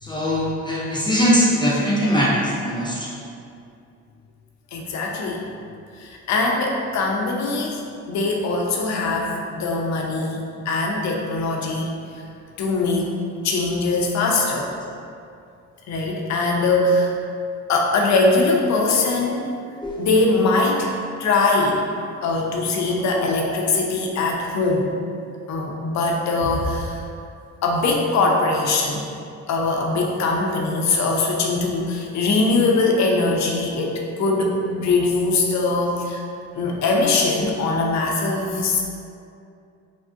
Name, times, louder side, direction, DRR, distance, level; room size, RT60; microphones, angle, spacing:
voice 1, 0.0-3.1 19.8-20.0, equal, 15° left, -6 dB, 0.4 m, -21 dB
voice 2, 4.7-5.4 6.0-10.4 10.7-11.9 12.6-13.2 13.4-14.7 15.9-17.1 17.7-19.5 20.0-20.9 21.2-24.9 25.5-27.0 27.6-29.0 29.5-36.2 36.5-38.8, left 3 dB, 65° left, 0 dB, 0.5 m, -21 dB
3.5 x 2.1 x 2.4 m, 2.5 s
cardioid pair, 90°, 30 cm